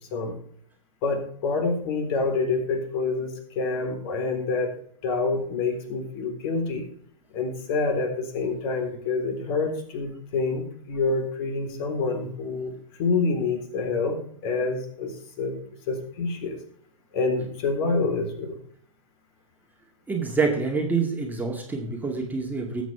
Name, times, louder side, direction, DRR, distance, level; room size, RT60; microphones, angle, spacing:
voice 1, 1.0-4.7 5.0-6.9 7.3-12.7 13.0-15.5 15.9-16.6 17.1-18.5, left 3 dB, 45° left, 3 dB, 3.8 m, -27 dB
voice 2, 20.1-22.8, right 4 dB, 10° right, 0 dB, 2.2 m, -26 dB
20.0 x 8.2 x 3.4 m, 0.62 s
figure-of-eight pair, 105°, 17 cm